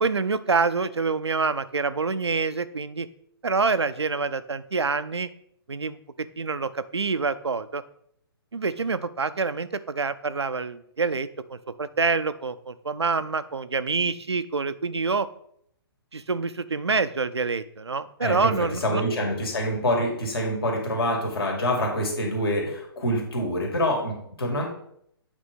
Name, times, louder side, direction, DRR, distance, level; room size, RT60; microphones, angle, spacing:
voice 1, 0.0-3.1 3.4-5.3 5.7-7.8 8.5-15.3 16.1-19.0, right 4 dB, 90° right, 13 dB, 0.5 m, -26 dB
voice 2, 18.2-24.7, equal, 65° left, 0 dB, 2.4 m, -26 dB
8.1 x 3.4 x 5.2 m, 0.70 s
figure-of-eight pair, 130°, 14 cm